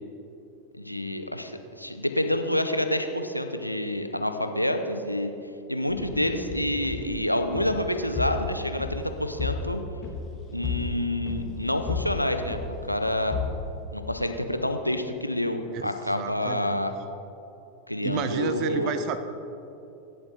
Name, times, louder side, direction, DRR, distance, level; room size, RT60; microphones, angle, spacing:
voice 1, 0.8-5.3 5.7-9.8 10.5-13.4 13.9-16.9 17.9-18.9, left 1 dB, 90° left, 7 dB, 0.6 m, -28 dB
sound 1, 5.9-14.6, left 4 dB, 25° left, 1.4 m, -34 dB
voice 2, 15.7-16.9 18.0-19.2, right 8 dB, 40° right, 10 dB, 0.6 m, -31 dB
16.5 x 7.6 x 2.8 m, 2.9 s
figure-of-eight pair, 90°, 0 cm